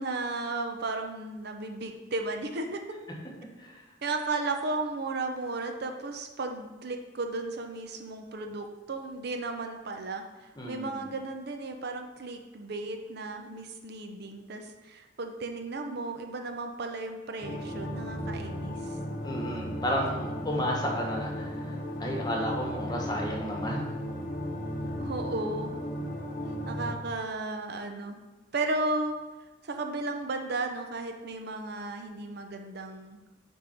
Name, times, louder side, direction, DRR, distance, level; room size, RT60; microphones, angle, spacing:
voice 1, 0.0-2.8 4.0-19.0 25.0-25.8 26.4-28.2 28.5-29.1 29.6-33.2, right 2 dB, 60° right, 4 dB, 0.6 m, -34 dB
voice 2, 10.6-11.1 19.2-23.9, equal, 20° left, -1 dB, 1.3 m, -32 dB
sound 1, 17.4-26.9, equal, 45° left, 0.9 m, -35 dB
9.0 x 3.6 x 4.5 m, 1.2 s
head